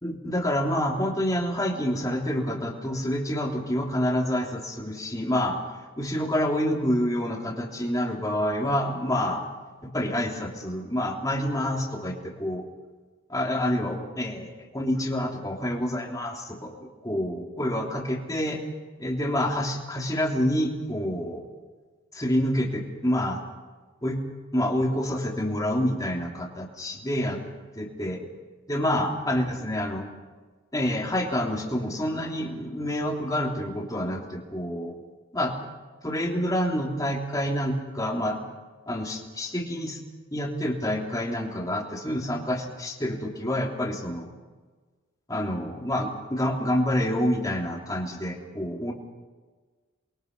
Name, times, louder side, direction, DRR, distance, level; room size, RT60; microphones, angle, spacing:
voice 1, 0.0-5.6 6.0-9.4 9.8-12.7 13.3-18.6 19.0-21.4 22.1-23.4 24.0-24.2 24.5-27.4 27.7-28.2 28.7-30.0 30.7-34.9 35.3-35.5 36.0-38.4 38.9-40.0 40.3-44.3 45.3-48.9, left 1 dB, 15° left, 0 dB, 3.2 m, -27 dB
28.5 x 23.0 x 5.4 m, 1.4 s
head